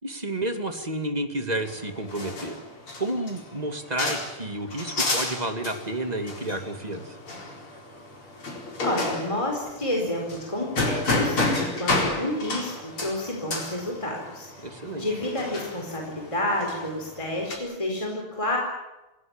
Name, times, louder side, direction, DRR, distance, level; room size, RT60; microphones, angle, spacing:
voice 1, 0.0-2.6 3.0-7.2 14.6-15.1, right 1 dB, 20° right, 6 dB, 2.4 m, -30 dB
sound 1, 1.6-17.6, left 2 dB, 75° left, 5.3 m, -31 dB
voice 2, 8.8-14.5 14.9-18.6, left 1 dB, 15° left, 0 dB, 4.5 m, -29 dB
27.5 x 17.5 x 9.0 m, 1.0 s
omnidirectional pair, 2.4 m